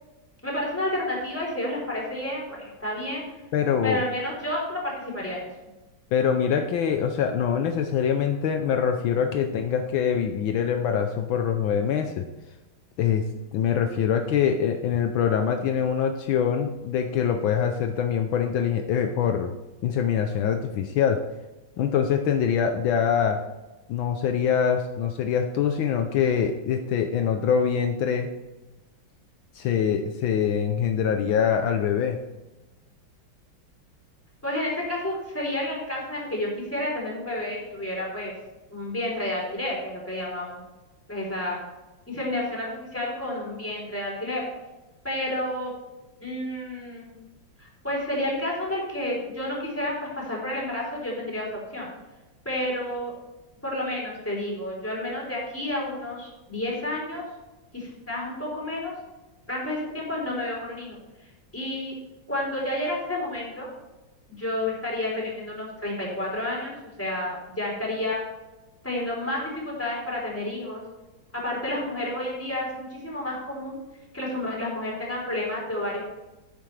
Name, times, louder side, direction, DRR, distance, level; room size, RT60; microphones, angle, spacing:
voice 1, 0.4-3.2 3.8-5.5 34.4-38.3 38.7-40.6 41.1-41.6 42.1-44.5 45.0-45.7 46.2-47.1 47.6-51.9 52.5-53.1 53.6-57.2 57.7-58.9 59.5-61.0 61.5-61.9 62.3-63.7 64.4-68.2 68.8-70.8 71.3-73.8 74.1-76.0, left 1 dB, 5° left, -4 dB, 3.5 m, -30 dB
voice 2, 3.5-4.0 6.1-12.2 13.0-13.3 13.5-19.5 19.8-21.2 21.8-23.4 23.9-28.3 29.5-32.2, left 7 dB, 75° left, 5 dB, 1.5 m, -24 dB
10.5 x 9.4 x 3.3 m, 1.1 s
omnidirectional pair, 2.2 m